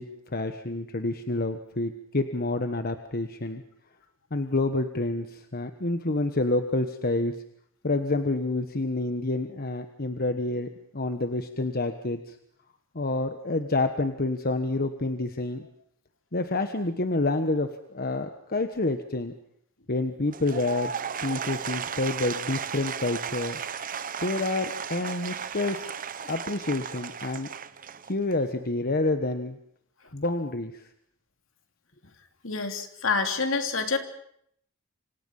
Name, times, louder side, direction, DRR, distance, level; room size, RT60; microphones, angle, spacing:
voice 1, 0.0-3.6 4.3-7.3 7.8-12.3 12.9-15.7 16.3-19.3 19.9-20.9 21.2-23.6 24.2-25.9 26.2-27.5 28.1-29.6 30.1-30.9, left 2 dB, 45° left, 7 dB, 1.3 m, -28 dB
Applause / Crowd, 20.2-28.5, right 7 dB, 40° right, 0.9 m, -35 dB
voice 2, 32.4-34.0, left 4 dB, 70° left, 6 dB, 3.1 m, -27 dB
28.0 x 26.0 x 5.6 m, 0.69 s
head